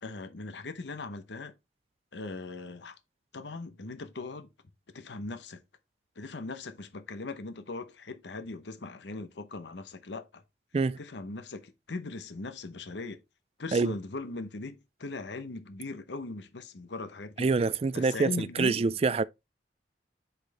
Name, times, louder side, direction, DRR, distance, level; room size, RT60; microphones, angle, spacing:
voice 1, 0.0-1.5 2.1-3.0 3.3-4.5 4.9-5.6 6.2-10.4 11.0-13.2 13.6-17.6 17.9-18.8, left 3 dB, 80° left, 0.8 m, -39 dB
voice 2, 17.4-19.2, right 4 dB, 35° right, 0.3 m, -26 dB
7.9 x 4.3 x 3.4 m
head